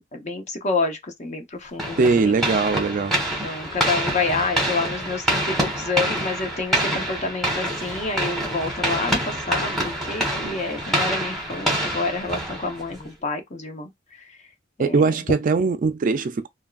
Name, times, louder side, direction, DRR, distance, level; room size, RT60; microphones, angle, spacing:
voice 1, 0.0-2.4 3.4-14.4 14.8-15.2, left 3 dB, 40° left, 0.7 m, -28 dB
sound 1, 1.8-13.1, right 1 dB, ahead, 1.2 m, -26 dB
voice 2, 2.0-3.1 14.8-16.5, right 4 dB, 45° right, 0.4 m, -21 dB
3.5 x 2.3 x 2.3 m
head